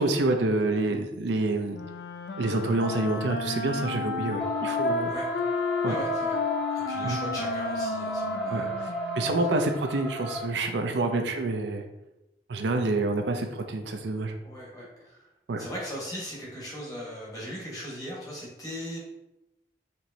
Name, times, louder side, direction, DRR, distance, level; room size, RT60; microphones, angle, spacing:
voice 1, 0.0-1.8 2.4-5.1 5.8-5.9 7.0-7.2 8.5-8.7 9.2-11.8 12.5-14.3 15.5-15.6, right 2 dB, 80° right, 5 dB, 0.5 m, -27 dB
Wind instrument woodwind instrument, 1.7-9.9, left 4 dB, 65° left, 0.4 m, -33 dB
sound 1, 4.4-10.4, equal, 5° left, 0.7 m, -32 dB
voice 2, 5.8-6.4 6.7-8.7 9.0-9.1 14.4-15.3 15.6-19.0, equal, 20° left, -5 dB, 1.3 m, -38 dB
4.4 x 3.0 x 2.7 m, 0.92 s
head